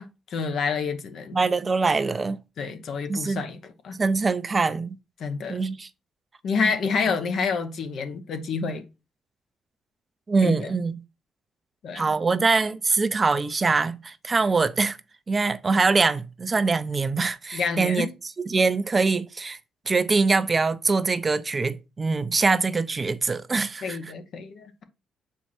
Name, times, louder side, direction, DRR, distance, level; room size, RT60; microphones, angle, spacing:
voice 1, 0.0-1.4 2.6-4.0 5.2-5.7 6.4-8.8 10.4-10.7 11.8-12.1 17.5-18.1 23.8-24.8, left 5 dB, 65° left, 1.0 m, -28 dB
voice 2, 1.3-2.4 3.1-3.4 4.0-5.0 5.5-5.9 6.6-6.7 10.3-11.0 11.9-15.0 15.3-18.1 18.5-19.6 19.9-24.0, right 4 dB, 30° right, 0.5 m, -23 dB
6.1 x 4.6 x 4.3 m
cardioid pair, 90°, 0 cm